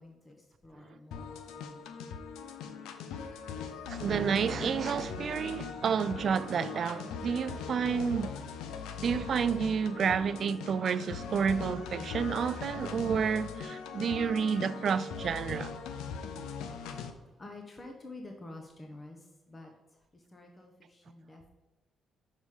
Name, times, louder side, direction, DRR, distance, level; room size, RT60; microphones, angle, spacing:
voice 1, 0.0-1.9 16.6-21.5, left 2 dB, 25° left, 1.0 m, -50 dB
sound 1, 1.1-17.1, left 6 dB, 90° left, 0.7 m, -40 dB
voice 2, 3.9-8.4 9.0-15.7, right 6 dB, 55° right, 0.3 m, -30 dB
6.2 x 5.0 x 5.4 m
cardioid pair, 90°, 0 cm